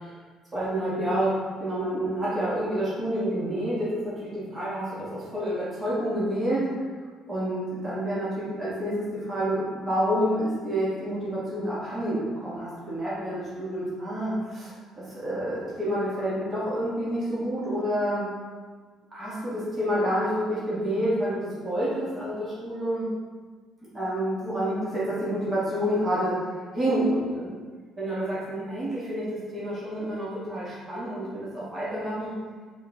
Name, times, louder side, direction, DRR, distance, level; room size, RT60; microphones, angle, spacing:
voice 1, 0.5-1.3 1.6-6.6 7.3-18.2 19.1-23.1 23.9-26.3 26.7-27.6 28.0-32.3, equal, 15° right, -10 dB, 1.3 m, -28 dB
3.6 x 2.3 x 3.6 m, 1.5 s
cardioid pair, 110°, 0 cm